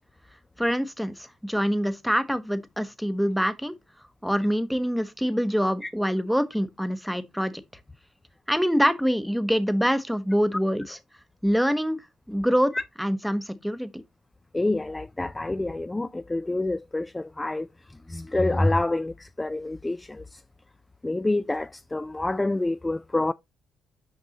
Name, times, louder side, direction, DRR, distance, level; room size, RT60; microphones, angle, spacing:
voice 1, 0.6-3.8 4.2-7.5 8.5-11.0 11.4-12.0 12.3-12.7 13.0-14.0, equal, ahead, 0.8 m, -25 dB
voice 2, 14.5-17.7 18.1-20.4 21.0-23.3, left 2 dB, 15° left, 0.3 m, -27 dB
6.2 x 5.4 x 2.8 m
cardioid pair, 90°, 0 cm